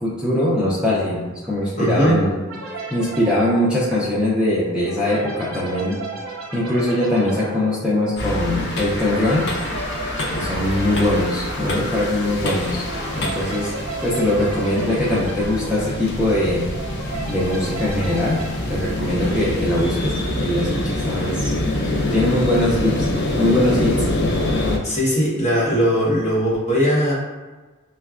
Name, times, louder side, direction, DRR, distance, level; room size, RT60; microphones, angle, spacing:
voice 1, 0.0-2.4 2.9-6.0 6.5-9.5 10.3-12.9 13.1-13.7 14.0-16.6 17.3-18.4 18.7-21.5 22.1-23.1 23.4-24.0, left 1 dB, 5° right, -9 dB, 0.5 m, -21 dB
voice 2, 1.8-2.2 24.4-24.5 24.8-27.1, equal, 30° left, -6 dB, 1.0 m, -19 dB
sound 1, 2.5-19.7, right 3 dB, 70° right, 0.7 m, -35 dB
sound 2, 8.2-24.8, left 1 dB, 50° left, 0.5 m, -25 dB
5.5 x 2.2 x 2.4 m, 1.3 s
head